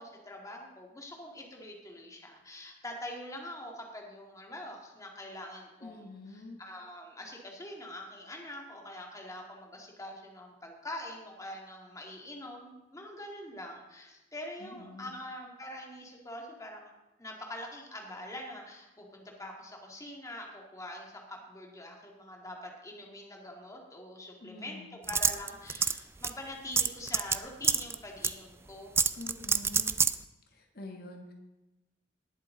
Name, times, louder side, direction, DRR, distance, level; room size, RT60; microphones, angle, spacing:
voice 1, 0.0-16.9 17.2-29.0, left 1 dB, 20° left, 0 dB, 2.0 m, -44 dB
voice 2, 5.8-6.6 14.6-15.1 24.4-25.0 29.1-30.0 30.5-31.3, left 2 dB, 55° left, 2 dB, 1.3 m, -46 dB
sound 1, 25.1-26.0 26.2-26.3 26.8-27.4 27.6-27.9 28.2-28.3 29.0-30.1, right 5 dB, 15° right, 0.3 m, -26 dB
19.5 x 7.5 x 3.8 m, 1.0 s
head